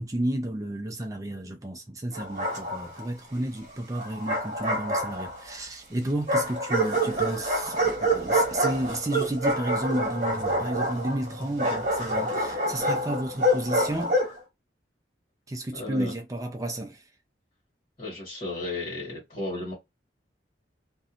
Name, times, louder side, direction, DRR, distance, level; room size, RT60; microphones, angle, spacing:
voice 1, 0.0-14.2 15.5-17.0, right 1 dB, 20° right, 0.4 m, -32 dB
Bark, 2.1-3.0 4.0-5.6 6.3-14.4, right 1 dB, 45° right, 1.1 m, -27 dB
voice 2, 15.7-16.1 18.0-19.7, left 2 dB, 40° left, 1.4 m, -34 dB
2.5 x 2.2 x 2.8 m
head